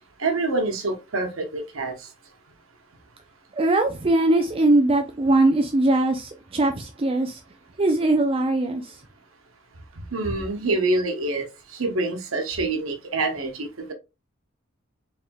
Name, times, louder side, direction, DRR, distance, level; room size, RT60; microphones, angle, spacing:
voice 1, 0.2-1.9 10.1-11.5 11.7-13.9, right 2 dB, 85° right, 1.0 m, -26 dB
voice 2, 3.6-7.4 7.8-9.0, right 2 dB, 30° right, 0.4 m, -21 dB
4.3 x 3.4 x 2.3 m
head